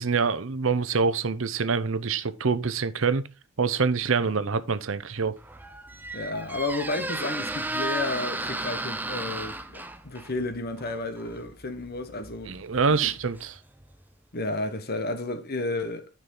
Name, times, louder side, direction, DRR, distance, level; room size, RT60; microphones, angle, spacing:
voice 1, 0.0-3.2 3.6-5.3 12.5-13.5, right 5 dB, 70° right, 0.7 m, -25 dB
Squeak, 5.3-14.0, right 2 dB, 10° right, 0.6 m, -35 dB
voice 2, 6.1-9.6 10.0-12.6 12.9-13.1 14.3-16.1, left 2 dB, 50° left, 1.2 m, -32 dB
9.8 x 6.1 x 3.8 m
head